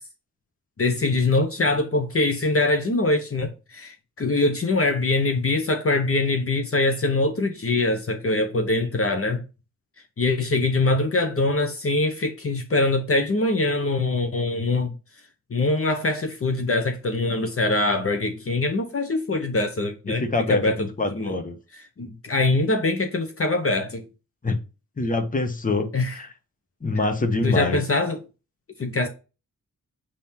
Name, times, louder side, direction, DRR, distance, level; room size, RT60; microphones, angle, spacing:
voice 1, 0.8-9.4 10.2-14.9 15.5-20.2 20.5-21.4 21.7-24.0 25.9-26.1 26.9-27.0 27.4-28.2 28.8-29.1, left 2 dB, 45° left, 1.0 m, -23 dB
voice 2, 20.1-21.6 24.4-24.6 25.0-26.3 26.8-27.8, left 2 dB, 25° left, 1.0 m, -25 dB
6.9 x 3.8 x 4.3 m
wide cardioid pair, 120°, 33 cm